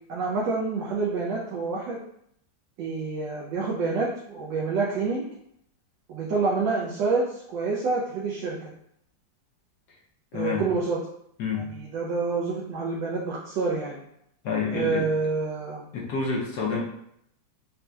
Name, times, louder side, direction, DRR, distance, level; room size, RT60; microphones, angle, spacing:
voice 1, 0.1-2.0 2.8-5.2 6.1-8.7 10.3-11.0 11.6-14.0 14.7-15.8, right 4 dB, 75° right, -4 dB, 1.3 m, -27 dB
voice 2, 10.3-10.7 11.4-11.7 14.4-15.1 15.9-16.8, left 5 dB, 65° left, -3 dB, 1.2 m, -28 dB
4.2 x 2.6 x 2.3 m, 0.74 s
omnidirectional pair, 2.0 m